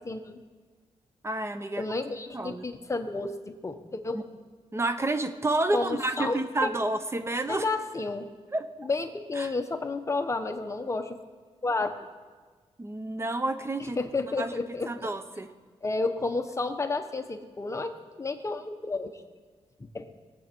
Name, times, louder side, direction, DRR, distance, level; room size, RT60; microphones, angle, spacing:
voice 1, 0.0-0.4 1.8-4.2 5.7-6.7 7.5-8.3 8.8-11.2 11.6-12.0 14.0-15.1 15.8-19.1 19.8-20.1, left 3 dB, 25° left, 7 dB, 1.1 m, -31 dB
voice 2, 1.2-1.9 2.3-2.6 4.1-4.2 4.7-7.6 8.5-8.6 9.4-9.5 12.8-14.0 14.4-14.5 14.9-15.5, right 2 dB, 25° right, 9 dB, 0.8 m, -29 dB
21.0 x 8.1 x 4.5 m, 1.5 s
cardioid pair, 95°, 12 cm